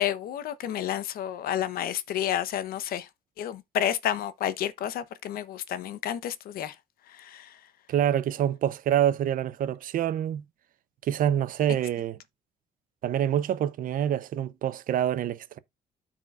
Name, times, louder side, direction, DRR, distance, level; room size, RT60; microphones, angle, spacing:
voice 1, 0.0-3.1 3.4-6.8 7.1-7.6, left 10 dB, 80° left, 0.8 m, -30 dB
voice 2, 7.9-10.4 11.0-12.2 13.0-15.6, right 10 dB, 65° right, 0.7 m, -26 dB
13.5 x 4.5 x 2.4 m
cardioid pair, 120°, 15 cm